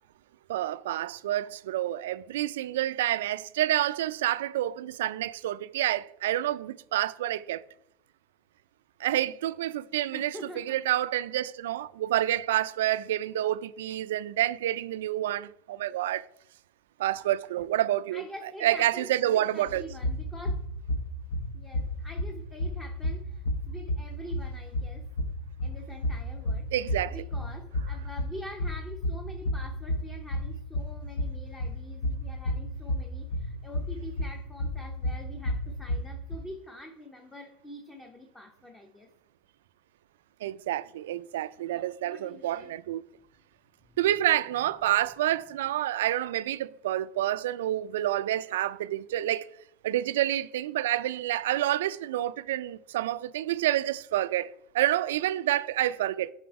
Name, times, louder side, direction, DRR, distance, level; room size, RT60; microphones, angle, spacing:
voice 1, 0.5-7.6 9.0-16.2 17.0-18.2 18.6-19.9 26.7-27.2 40.4-43.0 44.0-49.5 49.8-56.3, right 13 dB, 90° right, 0.3 m, -28 dB
voice 2, 10.1-10.8 18.1-20.6 21.5-25.1 25.6-39.1 41.7-42.7 43.8-44.0, equal, 15° left, 0.9 m, -45 dB
sound 1, 19.7-36.4, left 1 dB, 85° left, 0.8 m, -32 dB
7.8 x 4.3 x 4.7 m
supercardioid pair, 115°, 0 cm